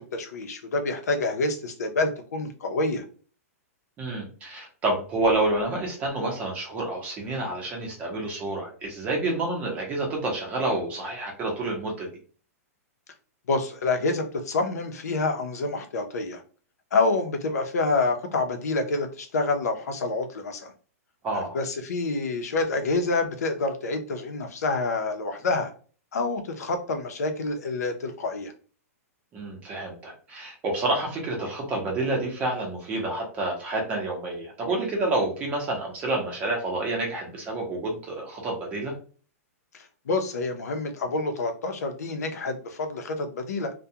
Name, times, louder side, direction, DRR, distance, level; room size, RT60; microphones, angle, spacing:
voice 1, 0.0-3.0 13.5-16.4 16.9-20.7 21.3-25.7 26.1-28.5 40.1-43.7, left 3 dB, 90° left, 0.6 m, -27 dB
voice 2, 4.0-12.1 21.2-21.6 29.3-38.9, right 2 dB, 15° right, 0.7 m, -28 dB
2.3 x 2.2 x 2.7 m
hypercardioid pair, 165°, 8 cm